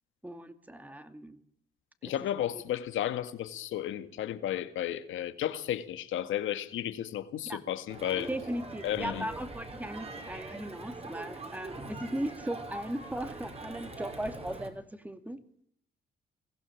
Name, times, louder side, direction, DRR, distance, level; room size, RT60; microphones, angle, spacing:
voice 1, 0.2-1.4 2.0-2.1 2.5-2.6 7.4-7.6 8.3-15.4, right 1 dB, 10° right, 2.4 m, -37 dB
voice 2, 2.0-8.3 8.8-9.3, left 11 dB, 80° left, 1.9 m, -33 dB
Crowd, 7.9-14.7, right 2 dB, 30° right, 5.4 m, -43 dB
22.5 x 16.0 x 7.2 m
cardioid pair, 90°, 20 cm